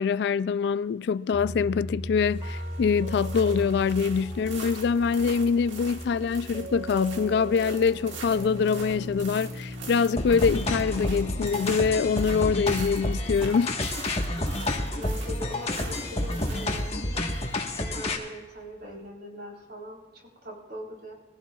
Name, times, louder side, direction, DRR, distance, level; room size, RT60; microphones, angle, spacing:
voice 1, 0.0-13.8, left 6 dB, 60° left, 0.3 m, -24 dB
sound 1, 1.3-13.3, equal, 25° right, 1.7 m, -38 dB
sound 2, 2.2-19.1, right 4 dB, 75° right, 1.9 m, -45 dB
sound 3, 10.2-18.2, left 1 dB, 35° left, 1.4 m, -29 dB
voice 2, 14.9-17.3 17.8-21.1, equal, 60° right, 3.9 m, -41 dB
21.5 x 15.5 x 2.4 m
head